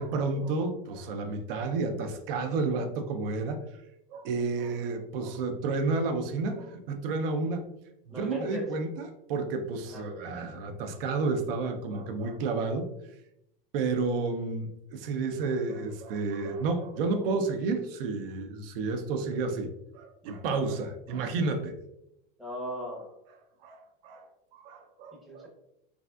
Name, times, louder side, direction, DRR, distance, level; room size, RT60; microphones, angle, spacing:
voice 1, 0.0-3.6 4.1-7.7 8.1-12.9 13.7-19.7 19.9-21.8 23.6-25.5, right 3 dB, 70° right, 6 dB, 0.5 m, -31 dB
voice 2, 8.1-8.7 9.9-10.0 22.4-23.1 25.3-25.5, equal, ahead, -4 dB, 0.6 m, -37 dB
3.3 x 2.5 x 2.2 m, 0.81 s
supercardioid pair, 145°, 29 cm